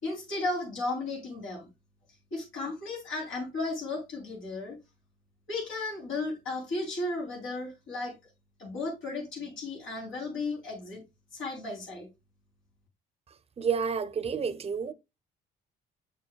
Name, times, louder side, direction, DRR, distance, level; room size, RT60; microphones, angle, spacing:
voice 1, 0.0-1.7 2.3-4.8 5.5-8.1 8.6-11.0 11.3-12.1, left 2 dB, 90° left, 3.2 m, -34 dB
voice 2, 13.6-14.9, right 6 dB, 30° right, 0.6 m, -30 dB
6.7 x 6.3 x 2.2 m
cardioid pair, 90°, 20 cm